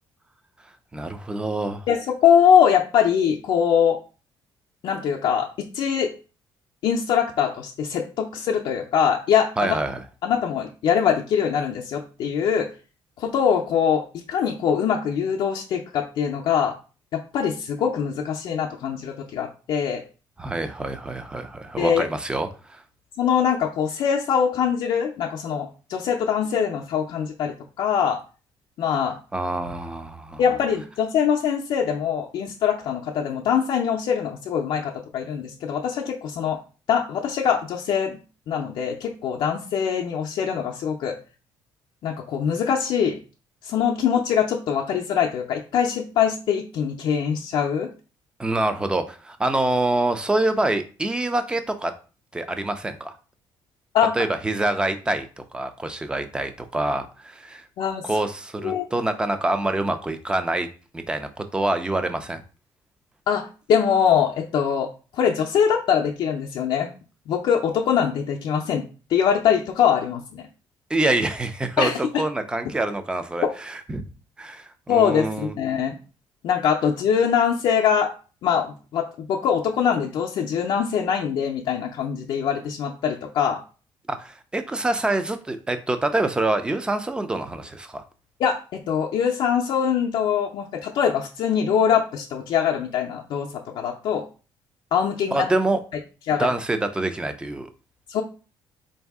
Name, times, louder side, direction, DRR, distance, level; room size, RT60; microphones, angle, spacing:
voice 1, 0.9-1.9 9.6-10.0 20.4-22.8 29.3-30.4 48.4-51.9 52.3-53.1 54.2-57.6 58.0-60.7 60.9-62.4 70.9-74.1 74.4-75.5 84.1-88.0 95.3-95.8 96.4-97.7, right 2 dB, 10° right, 9 dB, 0.4 m, -26 dB
voice 2, 1.9-4.0 4.8-6.1 6.8-9.8 10.2-12.7 13.2-16.7 17.1-20.0 21.8-22.0 23.2-28.2 28.8-29.2 30.4-36.6 36.9-38.2 38.5-41.2 42.0-43.2 43.6-47.9 53.9-54.2 57.8-58.0 58.6-58.9 63.3-64.9 65.1-66.9 67.3-68.8 69.1-70.4 71.8-72.0 74.9-76.0 76.4-78.1 78.4-83.6 88.4-94.2 94.9-95.5 96.3-96.5 98.1-98.2, left 8 dB, 65° left, 0 dB, 0.5 m, -23 dB
3.9 x 2.7 x 3.4 m, 0.35 s
cardioid pair, 140°, 9 cm